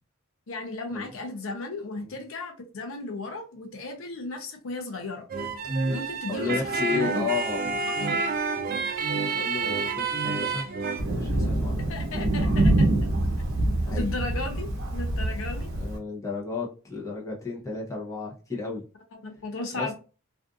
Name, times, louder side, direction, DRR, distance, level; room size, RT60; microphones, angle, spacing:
voice 1, 0.5-5.2 5.9-7.3 8.0-8.2 11.9-12.9 13.9-15.7 19.2-19.9, left 3 dB, 65° left, 0.5 m, -35 dB
sound 1, 5.3-11.0, right 4 dB, 45° right, 0.5 m, -28 dB
voice 2, 6.3-7.6 9.3-10.7 11.1-11.9 13.8-14.1 15.8-18.8 19.7-19.9, left 4 dB, 15° left, 0.7 m, -33 dB
Thunder, 11.0-16.0, right 1 dB, 70° right, 0.8 m, -25 dB
2.5 x 2.4 x 2.4 m
head